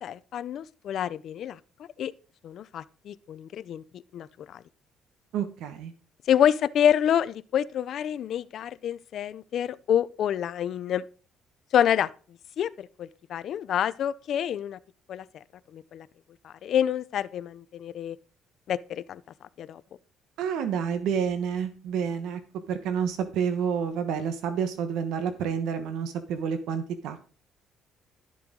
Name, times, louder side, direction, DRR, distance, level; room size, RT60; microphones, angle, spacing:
voice 1, 0.0-1.6 2.0-2.1 2.4-4.3 4.5-4.6 6.3-11.0 11.7-12.1 12.6-12.7 13.0-14.8 15.1-15.2 15.7-16.1 16.4-18.2 18.7-19.2 19.6-19.8, left 9 dB, 60° left, 0.6 m, -27 dB
voice 2, 5.3-5.9 20.4-22.4 22.7-27.3, right 7 dB, 85° right, 1.2 m, -29 dB
12.5 x 7.5 x 3.8 m
cardioid pair, 120°, 0 cm